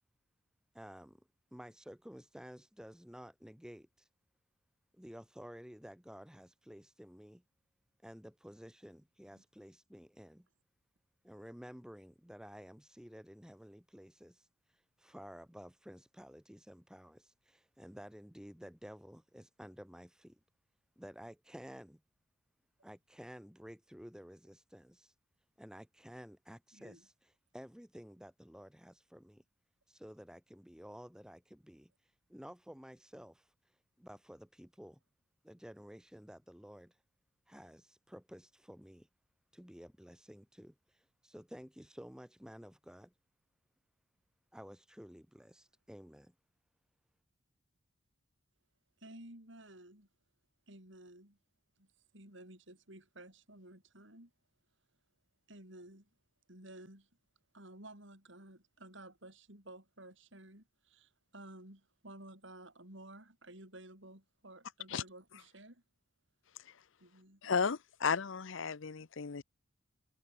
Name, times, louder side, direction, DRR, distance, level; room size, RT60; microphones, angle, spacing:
voice 1, 0.7-1.2 1.5-4.1 4.9-7.4 8.0-10.5 11.2-20.4 21.0-22.0 22.8-25.1 25.6-29.4 29.9-33.5 34.0-35.0 35.4-37.0 37.5-39.1 39.5-43.1 44.5-46.3, equal, 5° right, 1.2 m, -53 dB
voice 2, 26.7-27.1 49.0-50.1 50.7-51.4 51.8-54.3 55.5-56.1 56.5-57.1 57.5-65.8 67.0-67.4, right 1 dB, 60° right, 7.1 m, -54 dB
voice 3, 67.4-69.4, left 5 dB, 65° left, 0.7 m, -34 dB
head